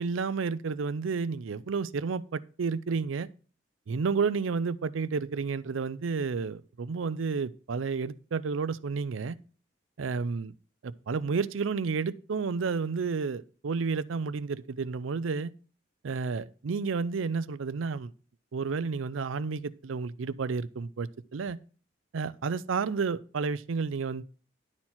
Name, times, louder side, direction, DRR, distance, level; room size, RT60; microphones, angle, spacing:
voice 1, 0.0-3.3 3.9-9.4 10.0-10.5 10.8-15.5 16.0-18.1 18.5-21.6 22.1-24.2, right 5 dB, 85° right, 0.5 m, -31 dB
11.0 x 4.4 x 5.7 m
head